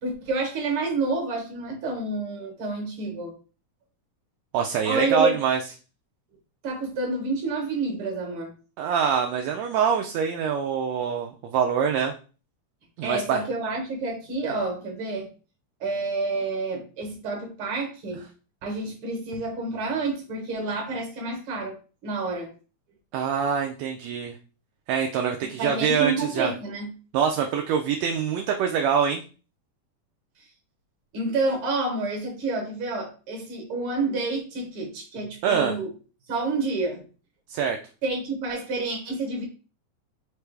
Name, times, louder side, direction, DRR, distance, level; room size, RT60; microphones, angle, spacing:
voice 1, 0.0-3.3 4.9-5.4 6.6-8.5 13.0-15.3 15.8-18.2 18.6-21.8 22.0-22.5 25.4-26.9 31.1-35.9 36.3-37.0 38.0-39.4, right 3 dB, 55° right, 2 dB, 1.8 m, -29 dB
voice 2, 4.5-5.6 8.8-12.1 13.0-13.4 23.1-24.3 24.9-26.5 27.1-29.2 35.4-35.7 37.5-37.8, right 7 dB, 80° right, 3 dB, 1.6 m, -24 dB
4.8 x 3.2 x 3.3 m, 0.36 s
omnidirectional pair, 3.5 m